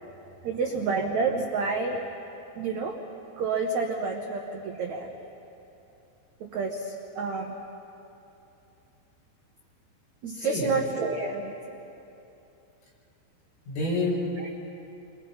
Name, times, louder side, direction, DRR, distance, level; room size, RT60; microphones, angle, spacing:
voice 1, 0.4-2.0 2.5-3.0 3.4-5.1 6.4-7.6 10.2-11.5 14.4-14.5, right 4 dB, 75° right, 1 dB, 1.7 m, -29 dB
voice 2, 10.4-10.7 13.7-14.5, left 1 dB, 85° left, -4 dB, 8.4 m, -29 dB
29.5 x 25.0 x 5.7 m, 2.9 s
omnidirectional pair, 5.3 m